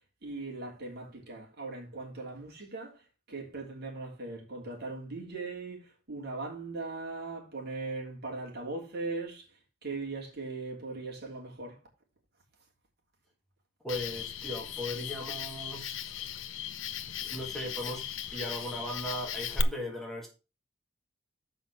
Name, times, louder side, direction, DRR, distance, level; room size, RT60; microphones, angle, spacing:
voice 1, 0.2-9.4 9.8-11.8, right 3 dB, 55° right, 3.3 m, -39 dB
voice 2, 13.8-16.2 17.2-20.3, left 1 dB, ahead, 1.8 m, -38 dB
Cricket, 13.9-19.6, left 8 dB, 65° left, 0.7 m, -37 dB
7.2 x 5.5 x 6.0 m
head